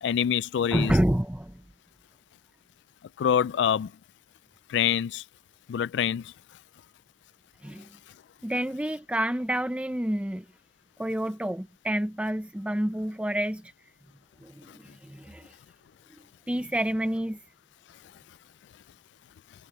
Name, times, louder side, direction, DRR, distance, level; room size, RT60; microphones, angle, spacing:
voice 1, 0.0-0.9 3.2-3.9 4.7-5.2 5.7-6.3 14.7-14.8, left 8 dB, 65° left, 0.3 m, -25 dB
voice 2, 0.7-1.6 7.6-7.9 8.4-10.4 11.0-13.6 14.4-15.5 16.5-17.4, right 1 dB, 5° right, 0.5 m, -28 dB
head